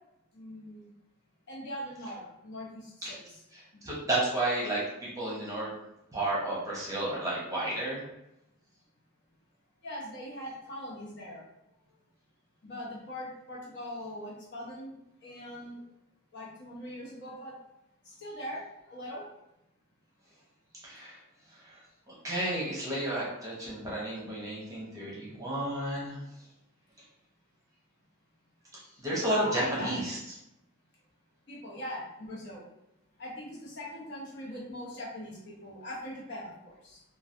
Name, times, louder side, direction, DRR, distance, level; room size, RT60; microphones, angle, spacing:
voice 1, 0.3-0.9 1.5-3.4 9.8-11.4 12.6-14.9 15.2-15.8 16.3-17.5 18.0-18.6 18.9-19.3 29.4-29.9 31.5-32.6 33.2-37.0, left 1 dB, 55° left, -5 dB, 0.9 m, -41 dB
voice 2, 3.8-5.7 6.1-8.0 20.8-21.2 22.2-26.2 29.0-30.2, right 1 dB, 15° right, -6 dB, 0.8 m, -31 dB
3.1 x 2.3 x 2.5 m, 0.86 s
head